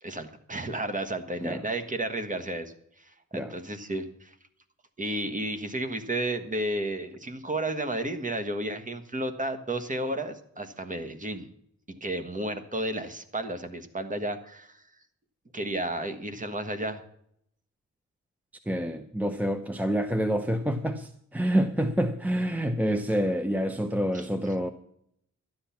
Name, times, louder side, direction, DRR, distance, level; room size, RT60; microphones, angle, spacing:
voice 1, 0.0-4.3 5.0-11.5 12.0-14.8 15.5-17.0 24.1-24.3, right 1 dB, 25° right, 1.4 m, -32 dB
voice 2, 18.7-24.7, equal, 5° right, 0.7 m, -27 dB
12.5 x 10.5 x 5.8 m
wide cardioid pair, 120°, 31 cm